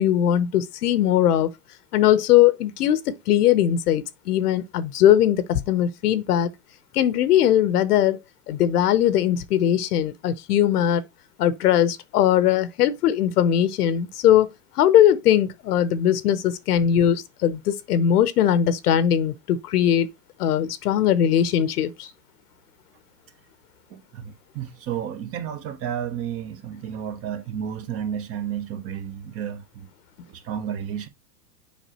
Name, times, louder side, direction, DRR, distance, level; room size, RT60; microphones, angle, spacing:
voice 1, 0.0-1.5 1.9-6.5 6.9-8.2 8.5-11.0 11.4-14.5 14.8-20.1 20.4-22.1, left 10 dB, 75° left, 0.9 m, -20 dB
voice 2, 23.9-29.9 30.3-31.1, right 9 dB, 30° right, 0.9 m, -32 dB
7.3 x 5.0 x 2.9 m
hypercardioid pair, 125°, 47 cm